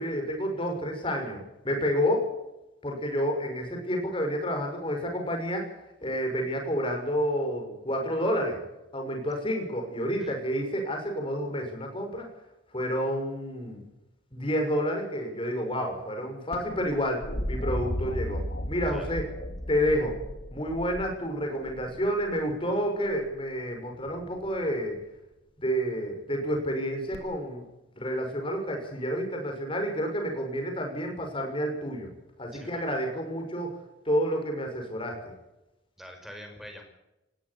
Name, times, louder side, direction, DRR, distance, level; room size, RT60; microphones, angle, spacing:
voice 1, 0.0-2.3 2.8-5.7 6.0-8.6 8.9-12.3 12.7-13.8 14.3-19.3 19.7-20.2 20.5-25.0 25.6-27.6 28.0-32.1 32.4-33.7 34.0-35.2, equal, 25° left, 3 dB, 6.1 m, -29 dB
sound 1, 16.5-22.4 24.1-24.6 27.1-27.2, equal, 55° left, 2.9 m, -35 dB
voice 2, 32.5-32.8 36.0-36.8, equal, ahead, 4 dB, 5.4 m, -45 dB
19.5 x 17.0 x 8.5 m, 0.93 s
head